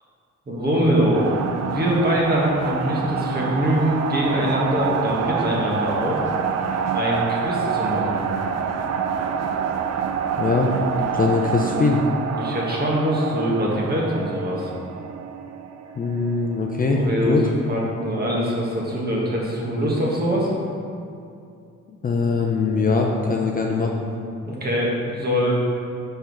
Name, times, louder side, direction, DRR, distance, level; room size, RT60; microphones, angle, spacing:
voice 1, 0.5-6.2 6.9-8.2 12.3-14.7 17.0-20.5 24.4-25.5, equal, 30° right, -3 dB, 1.5 m, -23 dB
sound 1, 1.1-16.9, right 6 dB, 60° right, 0.5 m, -27 dB
voice 2, 10.4-10.7 11.1-12.0 15.9-17.0 17.2-17.4 22.0-24.1, left 4 dB, 30° left, 0 dB, 0.5 m, -21 dB
4.5 x 4.3 x 5.3 m, 2.5 s
cardioid pair, 90°, 30 cm